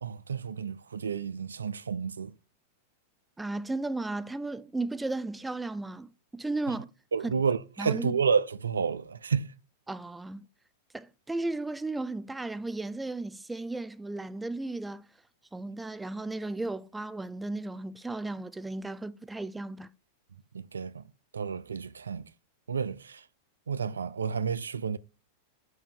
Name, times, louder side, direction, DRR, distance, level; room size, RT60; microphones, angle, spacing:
voice 1, 0.0-2.3 6.7-6.8 7.1-9.5 20.5-21.0 21.3-22.3 22.7-23.2 23.7-25.0, right 6 dB, 85° right, 0.3 m, -30 dB
voice 2, 3.4-6.9 7.2-7.3 7.8-8.2 9.9-10.5 10.9-15.1 15.5-19.9, right 2 dB, 10° right, 0.4 m, -35 dB
7.5 x 2.6 x 5.3 m
hypercardioid pair, 100°, 0 cm